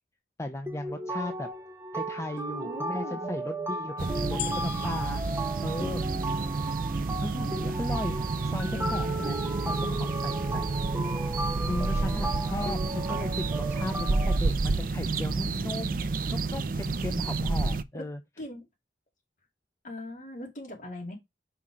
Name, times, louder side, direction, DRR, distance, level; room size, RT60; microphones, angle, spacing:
voice 1, 0.4-1.5 1.9-5.2 5.6-6.0 7.2-10.7 11.6-18.2, left 1 dB, 15° left, 0.4 m, -36 dB
sound 1, 0.7-14.4, right 2 dB, 15° right, 0.8 m, -35 dB
voice 2, 2.6-3.4 8.7-9.4 17.9-18.0 18.4-18.7 19.8-21.2, left 1 dB, 45° left, 2.7 m, -40 dB
sound 2, 4.0-17.8, right 3 dB, 50° right, 0.4 m, -30 dB
sound 3, 4.4-6.8 7.4-7.5, left 12 dB, 60° left, 0.6 m, -41 dB
5.8 x 3.6 x 4.8 m
head